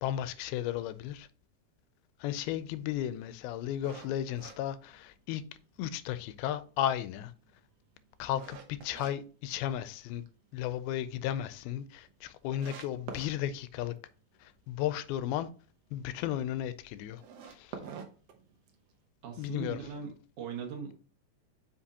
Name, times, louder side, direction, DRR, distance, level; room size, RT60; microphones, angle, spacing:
voice 1, 0.0-1.3 2.2-5.4 5.8-7.3 8.2-10.2 10.5-13.9 14.4-15.5 15.9-17.2 17.5-17.8 19.4-19.8, left 11 dB, 90° left, 2.5 m, -34 dB
sound 1, 3.8-5.5 6.0-6.1 6.6-9.1 9.5-10.3 10.6-10.7 11.1-11.2 11.3-11.4 12.1-12.2 12.5-13.3 17.1-18.9, right 6 dB, 80° right, 1.4 m, -46 dB
voice 2, 19.2-20.9, right 6 dB, 60° right, 2.6 m, -40 dB
8.4 x 5.2 x 2.8 m
omnidirectional pair, 4.3 m